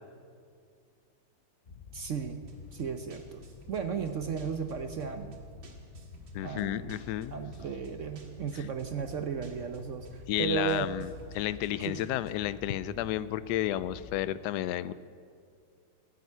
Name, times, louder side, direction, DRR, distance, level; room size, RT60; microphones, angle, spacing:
sound 1, 1.6-14.2, left 5 dB, 55° left, 0.5 m, -49 dB
voice 1, 1.9-2.4 2.7-3.4 3.7-5.4 6.4-7.0 7.3-10.9 11.8-12.0, right 6 dB, 60° right, 7 dB, 0.8 m, -35 dB
sound 2, 2.5-12.6, right 2 dB, 80° right, 2.4 m, -56 dB
voice 2, 6.3-7.3 10.3-11.1 11.3-14.9, left 13 dB, 75° left, 16 dB, 1.0 m, -32 dB
15.5 x 8.2 x 9.6 m, 2.3 s
omnidirectional pair, 2.0 m